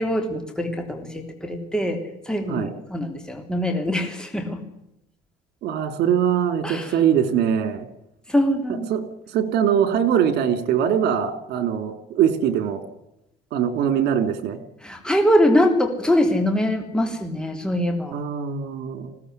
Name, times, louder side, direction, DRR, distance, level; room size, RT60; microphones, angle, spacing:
voice 1, 0.0-2.0 2.2-4.6 6.6-7.0 8.3-8.9 14.8-18.2, equal, 5° left, 4 dB, 3.3 m, -23 dB
voice 2, 5.6-7.9 8.9-9.0 9.3-12.8 13.5-14.6 18.1-19.2, right 8 dB, 75° right, 10 dB, 3.5 m, -22 dB
21.0 x 17.0 x 9.6 m, 0.84 s
cardioid pair, 110°, 17 cm